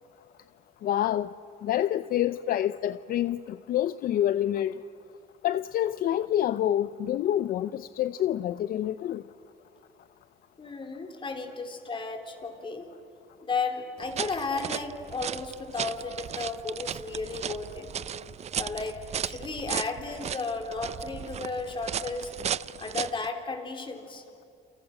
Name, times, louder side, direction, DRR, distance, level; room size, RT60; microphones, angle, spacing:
voice 1, 0.8-1.3 1.6-4.8 5.4-9.2, left 11 dB, 60° left, 13 dB, 0.6 m, -27 dB
voice 2, 10.6-12.9 13.4-17.9 18.5-22.3 22.8-24.2, left 4 dB, 30° left, 4 dB, 3.8 m, -34 dB
sound 1, 14.0-23.3, right 9 dB, 40° right, 0.6 m, -35 dB
30.0 x 29.0 x 6.1 m, 2.7 s
cardioid pair, 110°, 17 cm